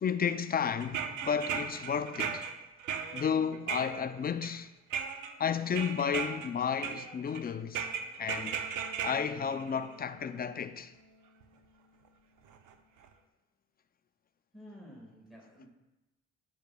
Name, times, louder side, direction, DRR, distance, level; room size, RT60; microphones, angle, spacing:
voice 1, 0.0-2.5 3.1-4.7 5.4-7.9 8.2-8.6 9.0-10.9, left 7 dB, 30° left, 0.5 m, -32 dB
sound 1, 0.8-4.5 4.9-5.3 5.7-6.5 6.8-7.4 7.7-10.4 11.4-11.5 12.5-12.7 13.0-13.1, right 7 dB, 85° right, 0.7 m, -37 dB
voice 2, 14.5-15.7, equal, ahead, 1.8 m, -51 dB
9.9 x 8.2 x 2.3 m
cardioid pair, 90°, 30 cm